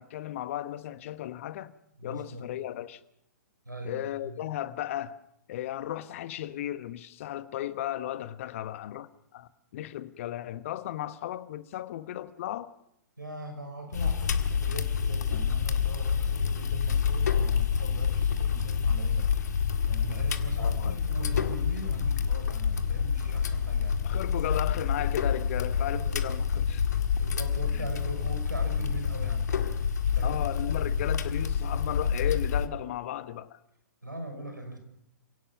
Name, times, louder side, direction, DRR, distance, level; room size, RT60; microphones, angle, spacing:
voice 1, 0.0-1.7 2.0-3.0 3.8-5.2 5.5-12.7 20.6-21.0 24.0-26.8 27.7-27.9 30.2-33.6, left 12 dB, 45° left, 1.2 m, -35 dB
voice 2, 2.0-2.6 3.7-4.5 13.2-19.3 19.9-24.0 25.9-26.2 26.5-26.7 27.2-29.5 30.1-30.4 34.0-34.8, right 1 dB, 90° right, 5.7 m, -40 dB
sound 1, 13.9-32.7, left 7 dB, 65° left, 1.8 m, -28 dB
28.5 x 17.5 x 6.0 m
figure-of-eight pair, 120°, 10 cm